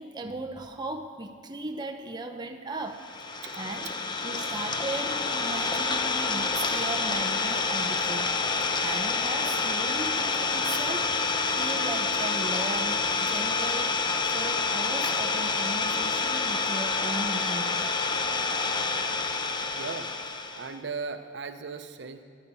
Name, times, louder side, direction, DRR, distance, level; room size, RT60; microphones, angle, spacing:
voice 1, 0.0-3.1 3.6-3.9 4.2-8.3 8.8-11.1 11.6-14.0 14.3-17.8, right 2 dB, 25° right, 4 dB, 0.6 m, -37 dB
Idling, 3.0-20.7, left 4 dB, 25° left, 0.7 m, -28 dB
voice 2, 19.7-20.1 20.5-22.2, right 4 dB, 65° right, 8 dB, 0.7 m, -37 dB
13.0 x 11.0 x 5.5 m, 2.2 s
head